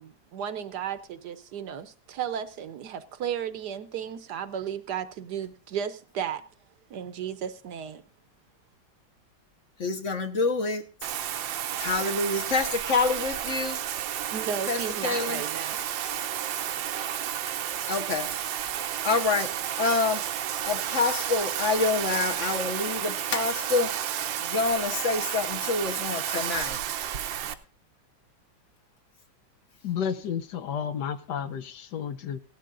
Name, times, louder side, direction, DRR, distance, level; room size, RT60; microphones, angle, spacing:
voice 1, 0.0-6.4 6.9-8.0 14.3-15.8 17.2-17.4, right 8 dB, 65° right, 1.3 m, -34 dB
voice 2, 9.8-10.8 11.8-13.8 14.7-15.4 17.9-18.3 19.0-19.5 19.8-20.2 20.6-23.9 24.5-26.8, left 4 dB, 45° left, 1.2 m, -27 dB
Bathtub (filling or washing), 11.0-27.5, right 10 dB, 80° right, 1.5 m, -31 dB
voice 3, 29.8-32.4, left 8 dB, 70° left, 1.3 m, -31 dB
17.0 x 12.5 x 2.5 m
omnidirectional pair, 2.0 m